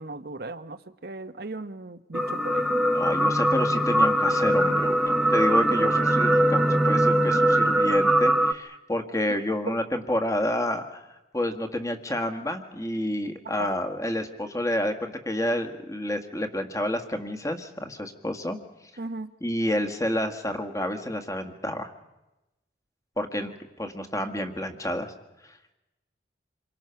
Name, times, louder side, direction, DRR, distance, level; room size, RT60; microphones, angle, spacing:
voice 1, 0.0-2.7 9.3-9.4 13.6-13.7 19.0-19.3, right 2 dB, 55° right, 10 dB, 1.0 m, -37 dB
sound 1, 2.1-8.5, right 1 dB, ahead, 0.9 m, -22 dB
voice 2, 2.9-11.0 11.3-18.6 19.4-21.9 23.2-23.5 23.8-25.1, left 1 dB, 15° left, 7 dB, 1.7 m, -29 dB
28.0 x 23.5 x 5.8 m, 0.96 s
head